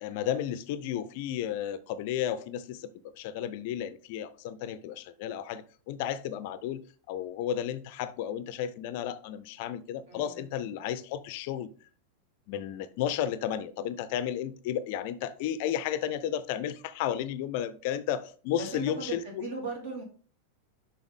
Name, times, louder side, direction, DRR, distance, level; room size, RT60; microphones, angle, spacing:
voice 1, 0.0-6.8 7.1-11.7 12.5-19.5, left 10 dB, 50° left, 0.5 m, -33 dB
voice 2, 10.1-10.5 18.6-20.0, right 3 dB, 55° right, 3.1 m, -38 dB
7.0 x 5.6 x 3.8 m
figure-of-eight pair, 90°, 0 cm